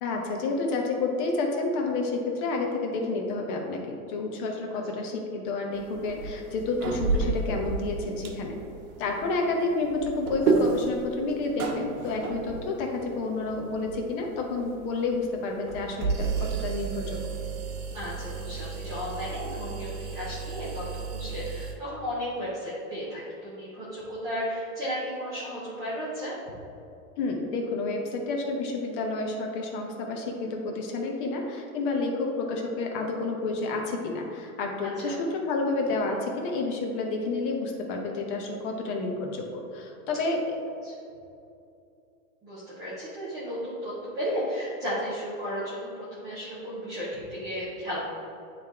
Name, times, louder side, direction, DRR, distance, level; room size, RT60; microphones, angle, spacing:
voice 1, 0.0-8.6 9.0-17.2 27.2-40.6, left 3 dB, 35° left, 1 dB, 1.0 m, -30 dB
sound 1, 5.7-21.7, right 4 dB, 75° right, 1.1 m, -32 dB
voice 2, 17.9-26.4 34.8-35.2 40.8-41.0 42.4-48.0, equal, 10° right, -10 dB, 0.3 m, -34 dB
9.6 x 3.3 x 3.5 m, 2.7 s
supercardioid pair, 155°, 43 cm